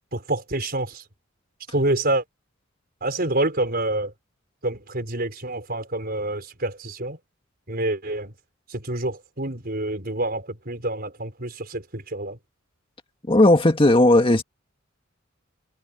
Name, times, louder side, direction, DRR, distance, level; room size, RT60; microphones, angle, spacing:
voice 1, 0.1-1.0 1.7-2.2 3.0-4.1 4.6-7.2 7.7-8.3 8.7-12.4, right 2 dB, 50° right, 5.1 m, -27 dB
voice 2, 13.3-14.4, left 1 dB, 25° left, 1.9 m, -16 dB
head